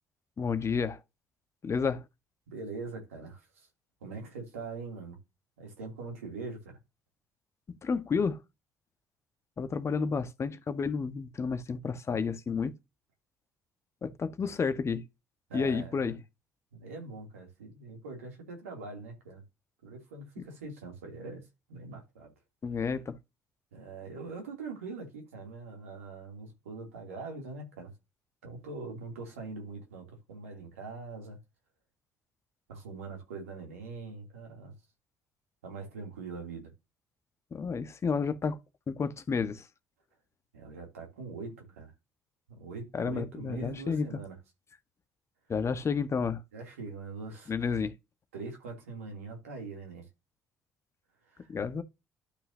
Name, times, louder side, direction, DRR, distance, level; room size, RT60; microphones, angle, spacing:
voice 1, 0.4-1.0 1.6-2.0 7.8-8.4 9.6-12.8 14.0-15.1 15.5-16.2 22.6-23.2 37.5-38.6 38.9-39.7 42.9-44.1 45.5-46.4 47.5-47.9 51.5-51.8, left 5 dB, 40° left, 1.2 m, -31 dB
voice 2, 2.5-3.7 4.0-5.2 5.6-6.8 15.5-16.2 16.7-19.4 19.8-22.3 23.7-27.9 28.4-31.4 32.7-34.7 35.6-36.7 40.5-41.9 42.6-44.3 46.5-47.5 48.3-50.1 51.3-51.5, right 3 dB, 85° right, 2.9 m, -42 dB
12.0 x 5.6 x 2.8 m
hypercardioid pair, 50°, 8 cm